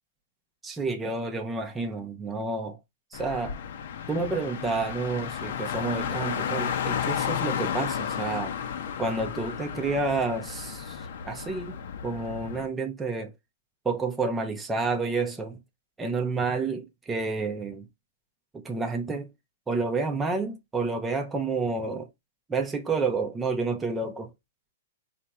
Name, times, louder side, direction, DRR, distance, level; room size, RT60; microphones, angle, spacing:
voice 1, 0.6-2.8 3.1-3.6 4.1-8.6 9.0-11.8 12.0-13.3 13.8-15.6 16.0-17.9 18.5-19.3 19.7-22.1 22.5-24.3, right 3 dB, 10° right, 0.7 m, -29 dB
Car, 3.1-12.7, left 8 dB, 60° left, 0.8 m, -33 dB
4.3 x 2.9 x 3.6 m
hypercardioid pair, 145°, 0 cm